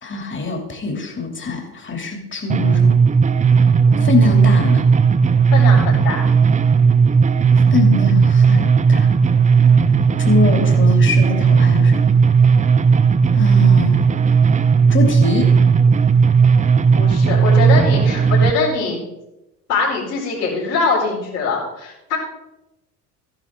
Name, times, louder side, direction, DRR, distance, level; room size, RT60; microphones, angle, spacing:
voice 1, 0.0-2.9 4.0-4.8 7.7-9.2 10.2-12.2 13.3-14.0 14.9-15.5, left 4 dB, 25° left, 3 dB, 2.9 m, -23 dB
sound 1, 2.5-18.5, right 6 dB, 15° right, 0.5 m, -14 dB
voice 2, 5.5-6.2 16.9-19.0 19.7-22.2, left 4 dB, 80° left, -4 dB, 5.0 m, -22 dB
14.0 x 11.0 x 3.8 m, 0.92 s
hypercardioid pair, 65°, 46 cm